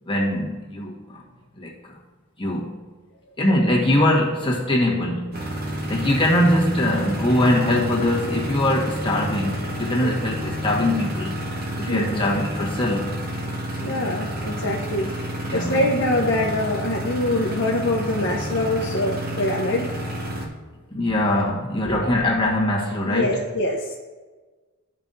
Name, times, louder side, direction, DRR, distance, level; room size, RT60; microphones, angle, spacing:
voice 1, 0.1-1.2 1.6-1.9 2.4-2.7 3.4-5.3 5.9-11.3 11.8-13.1 13.8-14.1 15.5-15.8 20.9-23.4, left 1 dB, 25° left, -3 dB, 1.3 m, -22 dB
sound 1, 5.3-20.5, equal, 45° right, 1.0 m, -29 dB
voice 2, 11.9-12.2 13.9-15.1 15.4-19.9 21.8-22.1 23.0-23.9, left 1 dB, 55° left, -2 dB, 0.8 m, -24 dB
13.5 x 5.4 x 2.6 m, 1.3 s
head